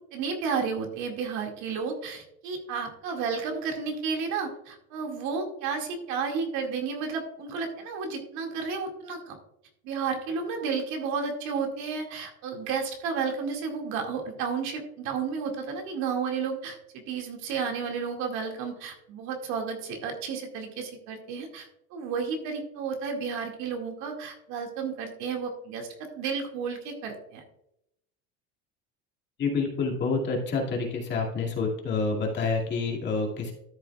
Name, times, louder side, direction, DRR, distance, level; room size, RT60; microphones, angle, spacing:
voice 1, 0.1-9.4 9.8-25.9 26.1-27.4, right 5 dB, 60° right, 2 dB, 2.1 m, -32 dB
voice 2, 29.4-33.5, left 4 dB, 35° left, -1 dB, 2.3 m, -28 dB
13.0 x 7.4 x 2.3 m, 0.79 s
cardioid pair, 150°, 32 cm